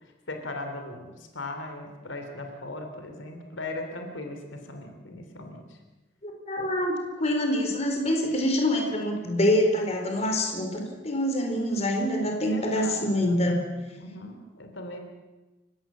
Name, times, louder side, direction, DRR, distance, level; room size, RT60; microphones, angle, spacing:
voice 1, 0.0-5.8 6.6-6.7 12.5-13.4 13.6-15.0, left 2 dB, 90° left, 5 dB, 3.4 m, -39 dB
voice 2, 6.2-13.6, left 1 dB, 35° left, 3 dB, 4.4 m, -25 dB
30.0 x 17.0 x 7.5 m, 1.2 s
head